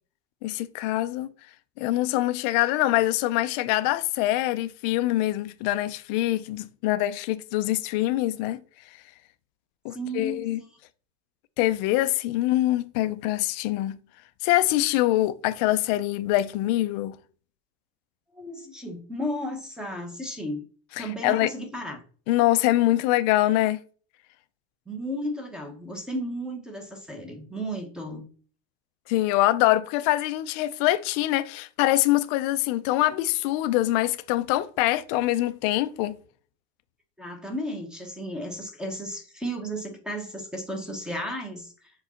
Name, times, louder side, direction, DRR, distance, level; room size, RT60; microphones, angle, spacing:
voice 1, 0.4-1.3 1.8-8.6 9.8-10.6 11.6-14.0 14.4-17.2 21.0-21.5 22.3-23.8 29.1-36.2, left 16 dB, 40° left, 0.4 m, -24 dB
voice 2, 9.9-10.5 18.3-20.6 21.0-22.0 24.9-28.2 37.2-41.7, equal, ahead, 0.7 m, -34 dB
4.9 x 3.9 x 5.6 m
supercardioid pair, 175°, 33 cm